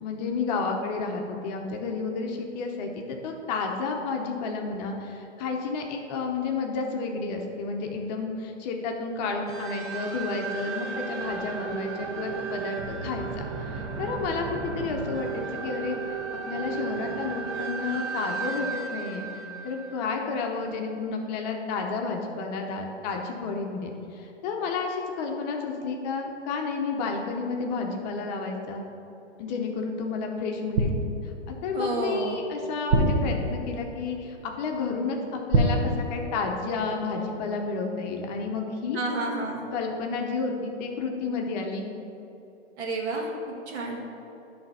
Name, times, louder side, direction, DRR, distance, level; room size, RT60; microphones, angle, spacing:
voice 1, 0.0-13.2 13.6-16.0 16.5-19.3 19.6-28.8 29.4-30.9 31.2-39.0 39.7-41.9, left 4 dB, 35° left, 2 dB, 0.8 m, -31 dB
sound 1, 9.5-20.7, right 5 dB, 25° right, 0.5 m, -34 dB
sound 2, 30.8-31.5 32.9-33.9 35.5-36.6 36.9-37.1, right 1 dB, 50° right, 0.9 m, -25 dB
voice 2, 31.7-32.4 38.9-39.7 42.8-43.3 43.7-44.0, right 3 dB, 65° right, 0 dB, 1.6 m, -30 dB
9.5 x 3.4 x 5.5 m, 3.0 s
hypercardioid pair, 140°, 35 cm